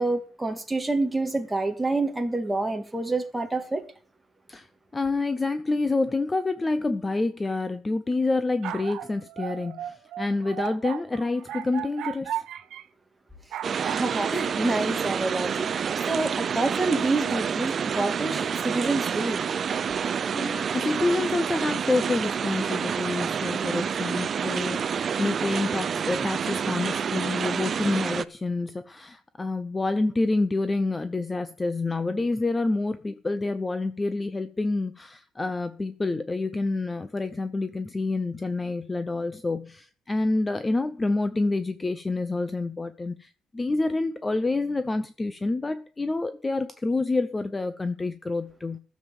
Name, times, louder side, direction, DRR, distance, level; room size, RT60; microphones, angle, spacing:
voice 1, 0.0-3.8 13.8-15.7 16.1-19.4, right 2 dB, 10° right, 2.0 m, -27 dB
voice 2, 4.9-12.4 20.3-48.8, left 3 dB, 15° left, 0.7 m, -28 dB
sound 1, 8.3-12.8 13.5-14.3, right 11 dB, 75° right, 1.0 m, -35 dB
sound 2, 13.6-28.2, right 7 dB, 40° right, 0.6 m, -28 dB
15.0 x 7.4 x 7.1 m
cardioid pair, 155°, 0 cm